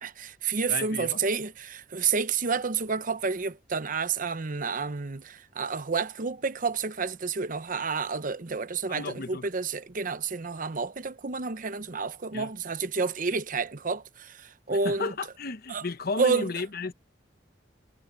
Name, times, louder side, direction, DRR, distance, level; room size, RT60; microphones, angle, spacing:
voice 1, 0.0-15.1 15.7-15.8 16.2-16.5, right 5 dB, 45° right, 0.9 m, -30 dB
voice 2, 0.7-1.2 8.9-9.5 12.3-12.5 14.7-16.9, left 3 dB, 55° left, 1.0 m, -34 dB
head